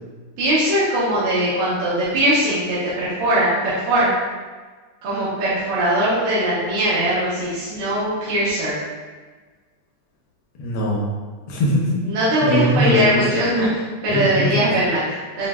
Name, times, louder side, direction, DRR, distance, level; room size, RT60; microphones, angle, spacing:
voice 1, 0.4-4.1 5.0-8.8 12.0-15.5, right 1 dB, 65° right, -11 dB, 1.7 m, -20 dB
voice 2, 10.6-11.1 11.5-12.0 12.4-13.2 14.1-14.4, equal, 80° left, -3 dB, 1.7 m, -20 dB
7.4 x 2.6 x 2.3 m, 1.4 s
omnidirectional pair, 2.4 m